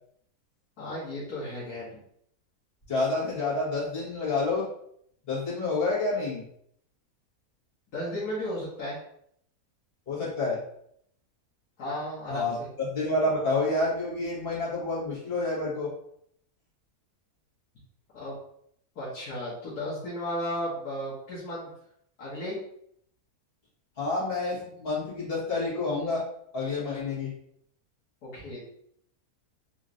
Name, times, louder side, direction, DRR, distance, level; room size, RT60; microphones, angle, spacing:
voice 1, 0.8-1.9 7.9-9.0 11.8-12.7 18.1-18.4 18.9-21.7 22.2-22.6 28.2-28.6, left 1 dB, 75° left, -9 dB, 1.6 m, -34 dB
voice 2, 2.9-4.7 5.3-6.4 10.1-10.6 12.3-15.9 24.0-26.2 26.5-27.3, left 2 dB, 40° left, -8 dB, 1.8 m, -28 dB
3.9 x 3.0 x 2.5 m, 0.70 s
omnidirectional pair, 1.7 m